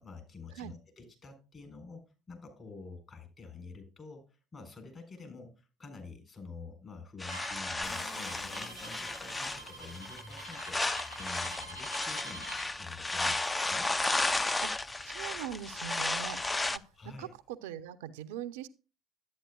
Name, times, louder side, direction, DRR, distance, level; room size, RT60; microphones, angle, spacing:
voice 1, 0.0-12.5 12.8-13.9 16.9-17.3, left 4 dB, 35° left, 5 dB, 3.8 m, -48 dB
sound 1, 7.2-16.8, left 2 dB, 15° left, 0.4 m, -34 dB
Bowed string instrument, 7.3-12.7, right 3 dB, 90° left, 1.2 m, -48 dB
Car, 7.8-11.9 12.9-13.0 13.5-16.8, left 3 dB, 55° left, 3.4 m, -53 dB
voice 2, 15.0-16.6 17.0-18.7, right 10 dB, 75° right, 10 dB, 0.5 m, -41 dB
11.5 x 8.8 x 2.2 m, 0.32 s
hypercardioid pair, 60°, 0 cm